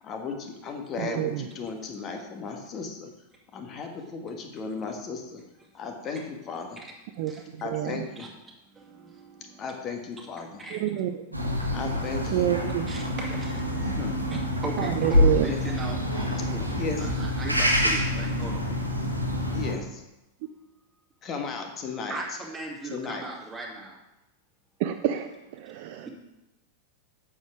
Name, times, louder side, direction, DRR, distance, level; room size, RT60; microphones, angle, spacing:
voice 1, 0.0-3.1 3.5-5.4 5.7-6.8 7.6-8.3 9.6-10.6 11.7-12.5 14.0-14.2 15.4-15.6 16.7-17.0 19.5-20.0 21.2-22.2 22.9-23.3, left 5 dB, 30° left, 4 dB, 1.6 m, -35 dB
voice 2, 1.0-1.5 7.2-7.3 7.6-8.1 10.7-11.4 12.3-12.9 14.8-15.4 24.8-26.1, right 12 dB, 50° right, 6 dB, 0.5 m, -28 dB
voice 3, 8.8-9.7 10.6-10.9 12.9-18.7 22.1-24.0 26.0-26.1, right 2 dB, 10° right, -2 dB, 2.4 m, -39 dB
sound 1, 11.3-19.7, left 1 dB, 90° right, 1.3 m, -26 dB
8.1 x 7.4 x 5.0 m, 0.94 s
figure-of-eight pair, 90°, 0 cm